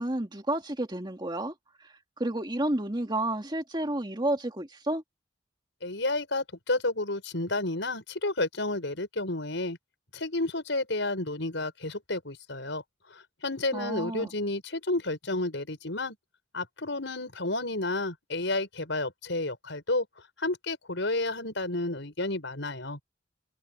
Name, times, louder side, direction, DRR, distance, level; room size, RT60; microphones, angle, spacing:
voice 1, 0.0-1.5 1.8-5.0 13.7-14.3, right 1 dB, 25° right, 2.3 m, -31 dB
voice 2, 5.8-9.8 10.1-12.8 13.1-16.2 16.5-20.1 20.4-23.0, left 2 dB, 70° left, 6.0 m, -31 dB
head